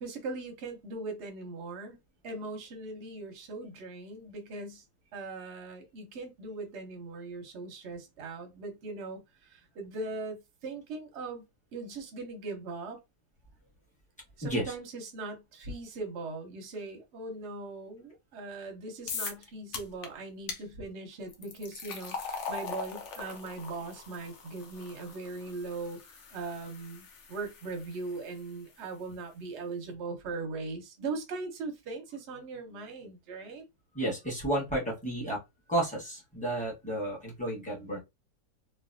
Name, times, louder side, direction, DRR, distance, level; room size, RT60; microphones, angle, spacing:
voice 1, 0.0-2.0 2.2-4.8 5.1-11.4 11.7-13.0 14.4-33.6, right 3 dB, 55° right, 0.8 m, -40 dB
voice 2, 14.4-14.7 33.9-35.4 35.7-38.0, right 1 dB, 5° left, 0.8 m, -32 dB
sound 1, 19.1-19.4 19.7-20.1 20.5-20.6 21.3-28.4, left 5 dB, 80° left, 0.6 m, -41 dB
3.2 x 2.2 x 2.6 m
omnidirectional pair, 1.9 m